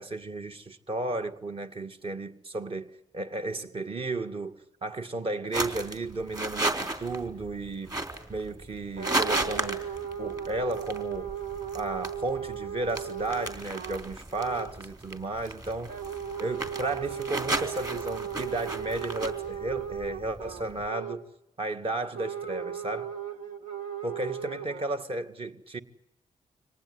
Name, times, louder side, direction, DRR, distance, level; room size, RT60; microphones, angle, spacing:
voice 1, 0.0-8.0 8.3-9.8 10.2-11.3 11.7-15.9 16.4-21.2 21.6-23.1 24.0-25.8, right 2 dB, 45° right, 1.9 m, -33 dB
sound 1, 5.5-20.9, right 2 dB, 30° right, 3.6 m, -35 dB
sound 2, 9.0-14.1 14.3-14.7 15.9-21.3 22.1-24.8, right 8 dB, 90° right, 1.9 m, -37 dB
25.0 x 18.5 x 9.6 m
cardioid pair, 65°, 13 cm